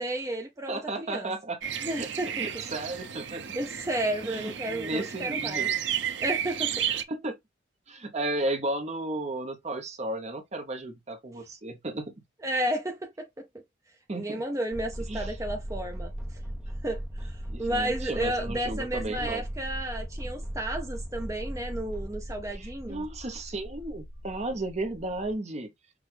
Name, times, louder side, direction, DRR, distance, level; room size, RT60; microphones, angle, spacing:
voice 1, 0.0-1.3 1.8-2.3 3.5-5.7 6.2-6.9 12.4-13.3 14.1-16.1 16.8-23.1, right 1 dB, 20° right, 0.7 m, -32 dB
voice 2, 0.7-1.6 2.0-2.1 2.3-3.4 4.2-5.7 7.1-7.4 7.9-12.1 14.1-14.4 15.1-15.3 17.5-19.4 22.5-25.7, right 2 dB, 40° right, 1.0 m, -34 dB
sound 1, 1.6-7.0, right 9 dB, 75° right, 0.7 m, -32 dB
sound 2, 14.7-25.3, equal, ahead, 1.1 m, -38 dB
6.1 x 2.6 x 3.4 m
head